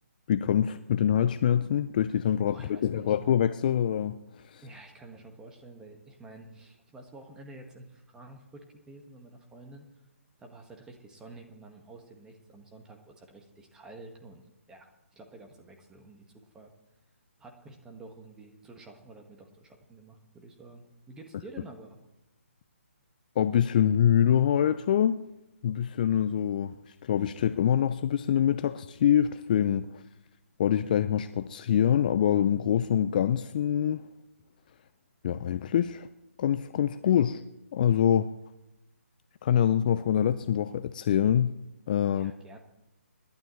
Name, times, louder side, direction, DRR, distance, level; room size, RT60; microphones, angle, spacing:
voice 1, 0.3-4.2 4.5-4.6 23.4-25.2 25.6-26.7 27.0-30.0 30.6-34.0 35.2-36.1 36.4-37.4 37.7-38.3 39.4-41.5 41.9-42.3, left 9 dB, 35° left, 12 dB, 0.5 m, -25 dB
voice 2, 2.5-3.2 4.6-9.9 10.4-14.4 14.7-16.7 17.4-22.0 42.1-42.6, right 2 dB, 10° right, 3 dB, 1.7 m, -49 dB
26.0 x 12.0 x 3.2 m, 0.96 s
figure-of-eight pair, 140°, 7 cm